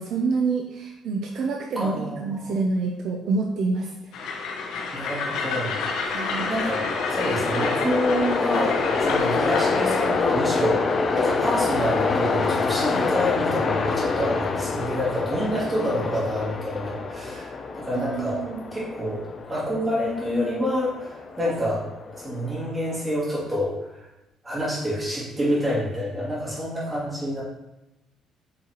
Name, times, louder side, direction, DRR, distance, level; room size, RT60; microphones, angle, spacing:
voice 1, 0.0-4.1 6.1-6.5 15.5-15.7 17.9-18.7, right 4 dB, 55° right, 1 dB, 0.6 m, -27 dB
voice 2, 1.8-2.6 4.9-18.4 18.7-19.2 19.5-21.8 22.1-24.1 24.4-27.4, equal, 15° right, -8 dB, 2.5 m, -28 dB
Train, 4.1-10.2, left 4 dB, 80° left, 1.2 m, -29 dB
Train 2, 5.8-22.9, left 4 dB, 30° left, 0.5 m, -27 dB
8.5 x 4.7 x 2.9 m, 0.94 s
cardioid pair, 180°, 0 cm